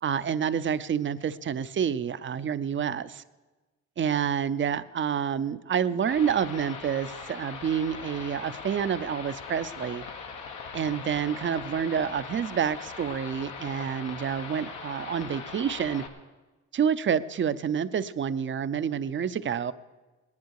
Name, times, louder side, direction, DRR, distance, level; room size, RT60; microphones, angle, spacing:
voice 1, 0.0-3.2 4.0-10.0 10.7-16.0 16.7-19.7, right 8 dB, 40° right, 14 dB, 0.6 m, -28 dB
sound 1, 6.1-16.1, left 5 dB, 85° left, 1.6 m, -40 dB
19.0 x 10.5 x 4.8 m, 1.2 s
cardioid pair, 90°, 30 cm